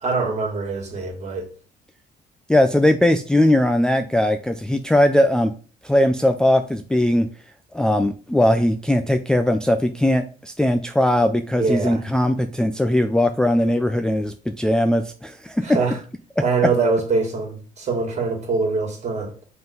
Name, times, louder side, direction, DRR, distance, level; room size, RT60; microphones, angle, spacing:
voice 1, 0.0-1.5 11.6-12.0 15.6-16.0 16.4-19.3, right 4 dB, 40° right, 2.4 m, -23 dB
voice 2, 2.5-5.5 5.8-7.3 7.7-15.8, left 1 dB, 5° left, 0.4 m, -19 dB
5.5 x 3.8 x 5.4 m
cardioid pair, 110°, 17 cm